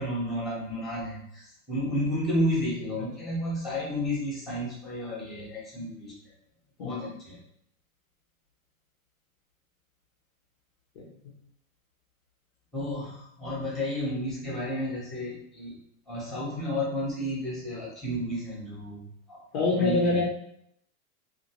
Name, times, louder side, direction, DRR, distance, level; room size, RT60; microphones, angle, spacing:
voice 1, 0.0-6.1 6.8-7.4 12.7-15.8 16.1-19.4 19.7-20.2, equal, ahead, -6 dB, 0.7 m, -32 dB
voice 2, 19.5-20.2, left 3 dB, 25° left, -4 dB, 0.4 m, -25 dB
2.9 x 2.4 x 2.8 m, 0.72 s
supercardioid pair, 155°, 43 cm